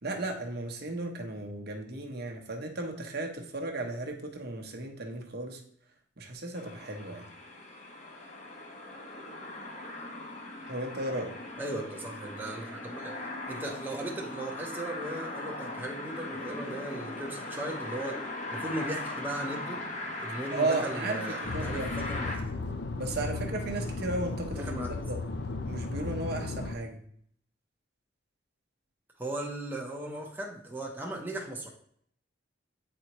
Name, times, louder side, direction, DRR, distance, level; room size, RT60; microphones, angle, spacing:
voice 1, 0.0-5.6 6.2-7.3 10.7-11.3 20.5-22.1 23.0-25.2 25.6-27.0, right 2 dB, 55° right, 1 dB, 1.0 m, -35 dB
sound 1, 6.5-22.4, left 2 dB, 40° left, 1.0 m, -39 dB
voice 2, 11.6-18.2 18.5-19.8 20.2-22.5 24.5-24.9 29.2-31.7, right 1 dB, 10° right, -2 dB, 0.8 m, -37 dB
sound 2, 21.4-26.8, left 3 dB, 60° left, 0.5 m, -35 dB
8.9 x 4.3 x 3.0 m, 0.65 s
head